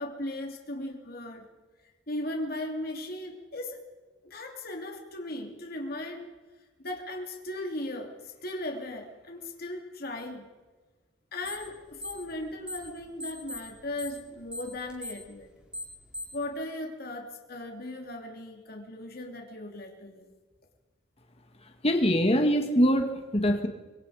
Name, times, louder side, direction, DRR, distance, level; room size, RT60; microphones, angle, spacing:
voice 1, 0.0-1.4 2.1-3.8 4.2-6.3 6.8-10.5 11.3-15.5 16.3-20.3, left 1 dB, 50° left, 2 dB, 3.0 m, -37 dB
sound 1, 11.4-11.7 12.0-12.9 13.2-16.4, left 1 dB, 5° right, 4.7 m, -39 dB
voice 2, 21.8-23.7, equal, 30° left, 5 dB, 2.0 m, -23 dB
25.0 x 24.5 x 5.1 m, 1.3 s
head